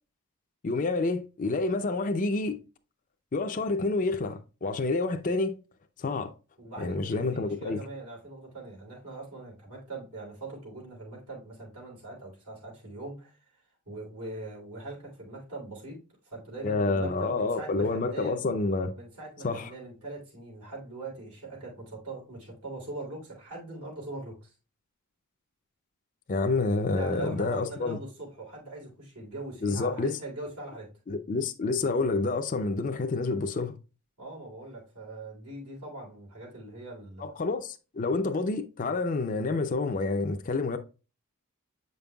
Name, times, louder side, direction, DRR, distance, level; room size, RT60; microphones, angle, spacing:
voice 1, 0.6-2.6 3.3-5.5 6.0-6.3 6.8-7.8 16.6-18.9 19.4-19.7 26.3-28.0 29.6-30.1 31.1-33.8 37.2-40.8, left 3 dB, 35° left, 0.5 m, -28 dB
voice 2, 6.6-13.4 13.8-18.4 18.9-24.5 26.9-30.9 33.5-33.6 34.2-37.3, right 2 dB, 85° right, 3.3 m, -41 dB
7.9 x 5.3 x 2.3 m
head